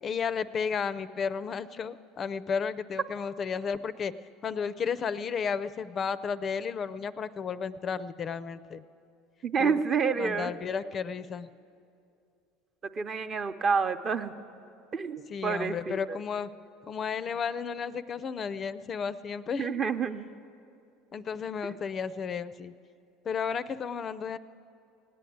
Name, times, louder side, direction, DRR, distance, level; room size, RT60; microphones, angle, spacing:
voice 1, 0.0-4.1 4.4-8.8 9.6-9.7 10.2-11.5 15.3-16.5 16.9-19.8 21.1-22.7 23.2-24.4, left 6 dB, 35° left, 15 dB, 0.4 m, -33 dB
voice 2, 9.4-10.5 13.0-14.3 14.9-16.2 19.6-20.3 21.6-21.7, right 5 dB, 35° right, 9 dB, 0.8 m, -29 dB
17.0 x 9.2 x 9.2 m, 2.5 s
supercardioid pair, 100°, 0 cm